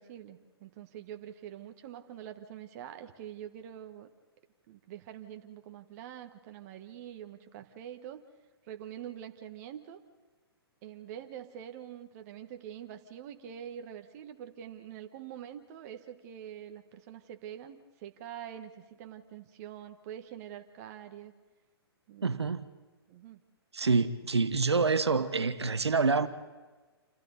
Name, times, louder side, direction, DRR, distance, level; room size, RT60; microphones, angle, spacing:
voice 1, 0.0-4.1 4.7-8.2 8.6-10.0 10.8-21.3 22.1-22.4 23.1-23.4, right 10 dB, 40° right, 1.5 m, -45 dB
voice 2, 22.2-22.7 23.7-26.3, right 4 dB, 90° right, 1.2 m, -27 dB
27.5 x 27.5 x 4.1 m
hypercardioid pair, 130°, 14 cm